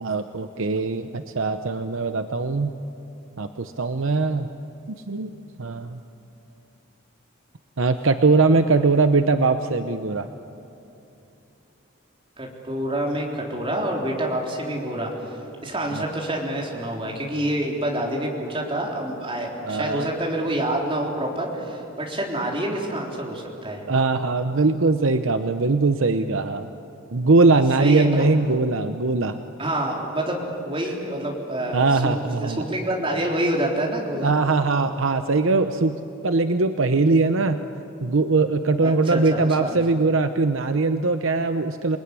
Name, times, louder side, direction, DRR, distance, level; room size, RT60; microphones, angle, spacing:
voice 1, 0.0-2.7 3.4-4.5 5.1-5.3 5.6-6.0 7.8-10.3 15.9-16.0 19.6-20.2 23.9-26.7 27.1-29.4 31.7-32.6 34.2-36.0 36.2-37.6 38.0-42.0, right 3 dB, 70° right, 9 dB, 0.8 m, -21 dB
voice 2, 12.4-15.3 15.6-23.9 27.8-28.3 29.6-32.1 32.4-34.3 38.8-39.8, right 1 dB, 25° right, -1 dB, 3.8 m, -27 dB
28.0 x 20.5 x 9.7 m, 2.8 s
head